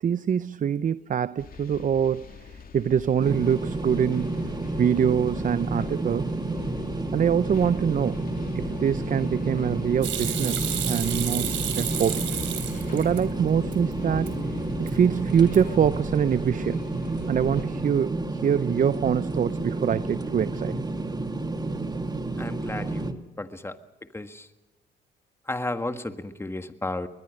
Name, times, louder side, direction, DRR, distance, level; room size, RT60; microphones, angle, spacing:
voice 1, 0.0-2.3 2.7-4.4 4.8-6.3 7.1-8.2 8.5-12.2 12.9-14.4 14.8-16.8 17.3-20.7, right 8 dB, 40° right, 0.6 m, -24 dB
sound 1, 1.4-17.7, left 5 dB, 45° left, 2.7 m, -41 dB
sound 2, 3.2-23.1, right 2 dB, 20° right, 1.8 m, -30 dB
Hands / Sink (filling or washing), 10.0-13.2 13.6-14.3 14.7-15.1 15.4-15.9, right 9 dB, 75° right, 3.8 m, -31 dB
voice 2, 22.4-23.7 24.1-24.4 25.5-27.1, left 2 dB, 10° left, 1.6 m, -33 dB
22.0 x 21.0 x 6.5 m
cardioid pair, 90°, 20 cm